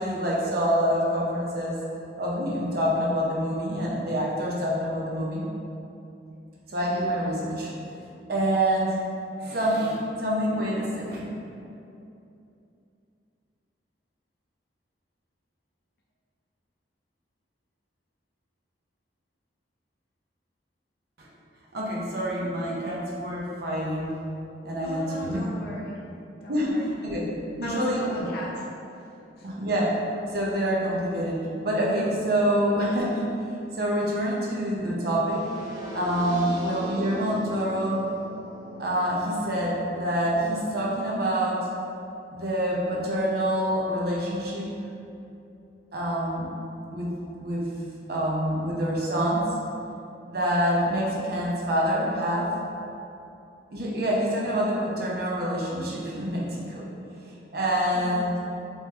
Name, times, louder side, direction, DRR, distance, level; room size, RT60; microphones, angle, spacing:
voice 1, 0.0-1.8 2.2-5.5 6.7-7.7 8.3-8.9 9.4-11.2 21.7-24.1 24.6-25.4 26.5-27.2 27.6-28.3 29.4-30.0 30.3-33.2 33.8-35.5 35.9-38.0 38.8-41.6 42.3-44.7 45.9-46.5 46.9-47.1 47.4-47.7 48.1-49.5 50.3-52.5 53.7-56.9 57.5-58.4, equal, 60° right, -4 dB, 0.7 m, -26 dB
voice 2, 24.8-26.1 26.4-27.0 27.6-28.7 29.0-29.1 29.4-29.5 32.4-32.6 36.3-36.6 57.9-58.4, equal, 60° left, -4 dB, 0.5 m, -37 dB
sound 1, 35.3-41.3, equal, 20° right, 0.6 m, -41 dB
3.5 x 3.0 x 2.8 m, 2.7 s
head